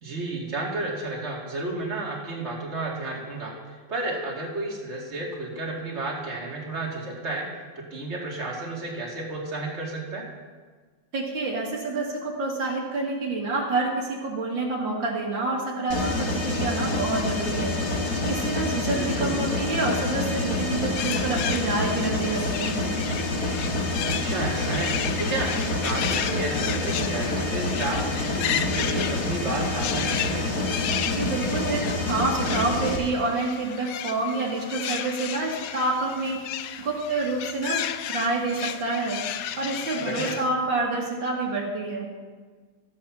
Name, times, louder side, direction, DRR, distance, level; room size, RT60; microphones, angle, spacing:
voice 1, 0.0-7.5 7.8-10.2 18.9-19.4 24.0-30.5 40.0-40.3, right 2 dB, 35° right, -3 dB, 2.5 m, -32 dB
voice 2, 11.1-17.8 18.3-22.9 31.0-36.4 36.8-37.8 38.1-39.2 39.6-42.1, right 3 dB, 75° right, -2 dB, 2.6 m, -28 dB
Mechanisms, 15.9-33.0, left 2 dB, 55° left, 2.1 m, -27 dB
sound 1, 21.0-40.5, left 10 dB, 75° left, 0.8 m, -34 dB
14.0 x 8.3 x 5.9 m, 1.5 s
omnidirectional pair, 2.1 m